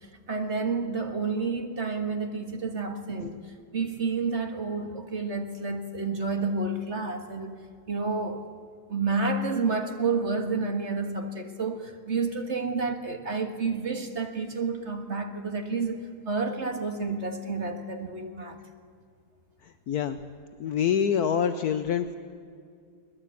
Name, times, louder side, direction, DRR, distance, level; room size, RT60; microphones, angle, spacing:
voice 1, 0.0-7.6 7.9-8.5 8.9-18.6, right 4 dB, 40° right, 6 dB, 1.8 m, -30 dB
voice 2, 19.9-20.2 20.6-22.2, left 8 dB, 65° left, 10 dB, 1.2 m, -26 dB
22.5 x 20.0 x 8.5 m, 2.2 s
omnidirectional pair, 1.9 m